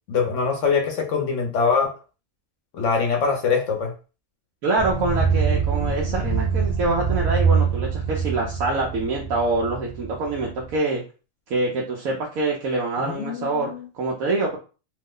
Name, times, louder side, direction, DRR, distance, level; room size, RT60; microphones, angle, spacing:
voice 1, 0.1-1.9 2.7-3.9 13.0-13.9, left 5 dB, 65° left, 2 dB, 1.0 m, -23 dB
voice 2, 4.6-11.0 11.5-14.6, right 2 dB, 85° right, -3 dB, 1.1 m, -25 dB
sound 1, 4.8-10.8, right 5 dB, 55° right, 0.9 m, -24 dB
3.0 x 2.0 x 3.6 m, 0.34 s
omnidirectional pair, 1.4 m